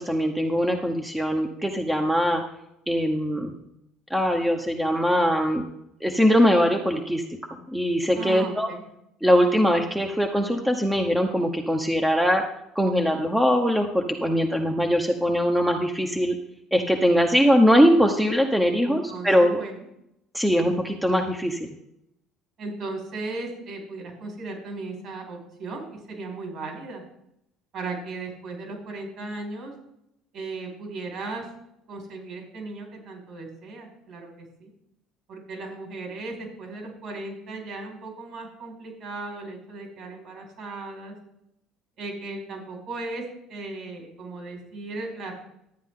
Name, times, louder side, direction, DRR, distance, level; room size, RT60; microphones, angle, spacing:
voice 1, 0.0-2.4 2.9-3.5 4.1-5.6 6.0-7.2 7.5-8.7 9.2-12.4 12.7-16.4 16.7-19.6 20.3-21.7, equal, 5° right, 3 dB, 1.0 m, -21 dB
voice 2, 8.1-8.8 18.9-19.8 22.6-27.0 27.7-29.7 30.3-31.5 31.9-34.7 35.3-41.2 42.0-43.2 43.5-45.3, right 3 dB, 55° right, 1 dB, 5.0 m, -36 dB
12.5 x 8.9 x 3.8 m, 0.77 s
cardioid pair, 120°, 0 cm